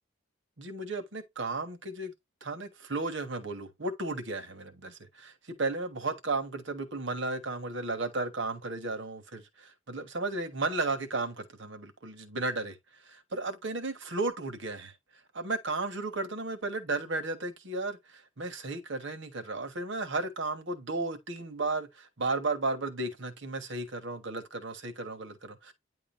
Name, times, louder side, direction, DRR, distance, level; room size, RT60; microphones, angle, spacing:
voice 1, 0.6-2.1 2.4-4.9 5.2-12.8 13.1-14.9 15.3-25.7, right 3 dB, 70° right, 1.4 m, -34 dB
9.7 x 3.8 x 2.6 m
head